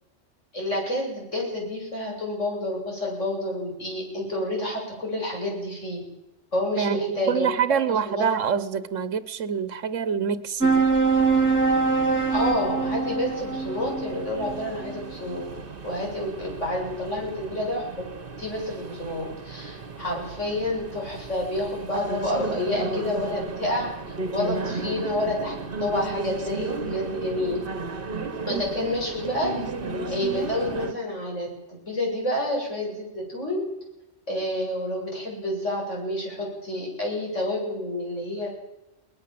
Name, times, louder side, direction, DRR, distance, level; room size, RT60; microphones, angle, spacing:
voice 1, 0.5-6.0 6.5-8.3 12.3-15.5 15.8-17.9 18.4-23.9 24.3-27.6 28.5-29.5 30.1-33.6 34.3-38.5, left 1 dB, 75° left, -1 dB, 8.4 m, -29 dB
voice 2, 6.8-10.8 28.5-28.9, right 7 dB, 75° right, 14 dB, 1.4 m, -26 dB
sound 1, 10.6-15.4, right 4 dB, 15° right, 3.0 m, -24 dB
sound 2, 11.2-30.9, right 3 dB, 45° right, 1.6 m, -35 dB
21.5 x 19.5 x 7.7 m, 0.95 s
omnidirectional pair, 1.3 m